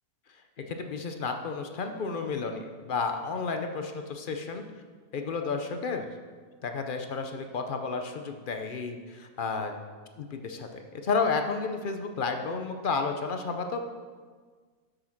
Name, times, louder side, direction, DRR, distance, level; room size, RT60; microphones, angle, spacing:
voice 1, 0.6-4.6 5.1-6.1 6.6-9.7 10.7-13.8, left 4 dB, 50° left, 5 dB, 0.6 m, -31 dB
7.8 x 6.5 x 5.9 m, 1.5 s
omnidirectional pair, 1.6 m